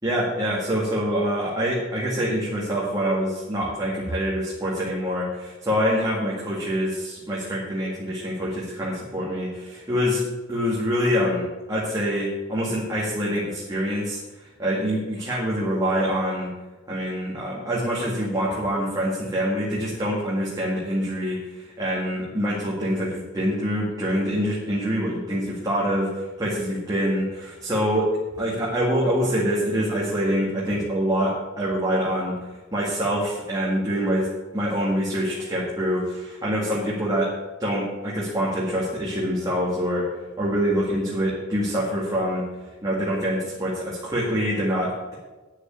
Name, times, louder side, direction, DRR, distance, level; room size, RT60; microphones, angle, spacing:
voice 1, 0.0-10.2 10.5-14.2 14.6-16.5 16.9-28.1 28.4-32.3 32.7-34.3 34.5-37.3 37.6-40.1 40.4-42.4 42.8-45.1, equal, 20° right, -6 dB, 2.1 m, -25 dB
9.4 x 6.8 x 8.5 m, 1.2 s
head